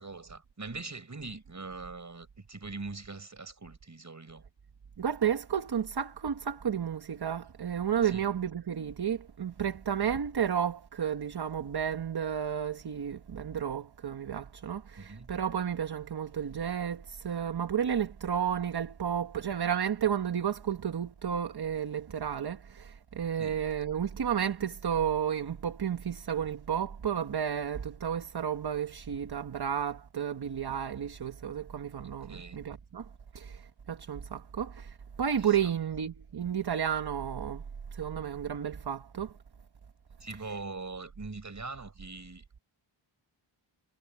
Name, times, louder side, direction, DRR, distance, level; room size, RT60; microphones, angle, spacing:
voice 1, 0.0-4.4 8.0-8.2 15.0-15.3 23.4-23.6 32.3-32.6 35.4-35.6 40.2-42.6, right 3 dB, 35° right, 6.2 m, -42 dB
voice 2, 5.0-33.0 33.3-37.6 37.9-39.3, right 8 dB, 55° right, 1.2 m, -32 dB
wide cardioid pair, 105°, 47 cm